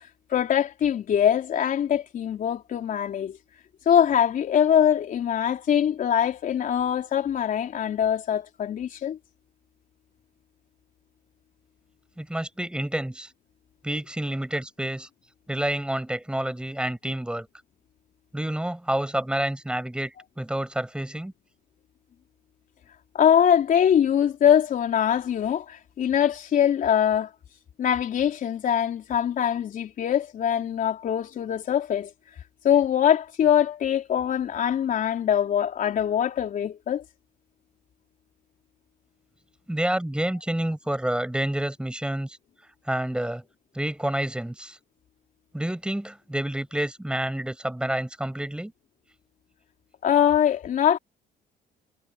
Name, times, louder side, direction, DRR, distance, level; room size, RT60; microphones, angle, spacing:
voice 1, 0.3-3.4 3.9-9.2 23.1-27.3 27.8-32.1 32.6-37.0 50.0-51.0, left 9 dB, 55° left, 4.0 m, -23 dB
voice 2, 12.2-13.3 13.8-15.1 15.5-17.5 18.3-21.3 39.7-42.4 42.9-43.4 43.7-44.8 45.5-48.7, right 1 dB, 5° right, 7.2 m, -29 dB
cardioid pair, 110°, 17 cm